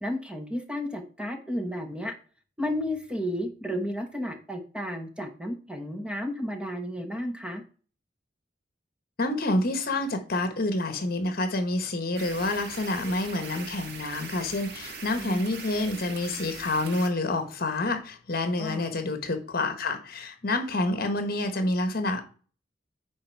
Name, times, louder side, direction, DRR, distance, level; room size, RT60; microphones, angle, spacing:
voice 1, 0.0-2.1 2.6-7.6 15.2-15.4 18.6-18.9, equal, 5° right, 1.0 m, -32 dB
voice 2, 9.2-22.2, left 2 dB, 55° left, 1.3 m, -28 dB
sound 1, 12.2-17.1, right 4 dB, 60° right, 1.6 m, -41 dB
9.5 x 4.2 x 4.7 m
head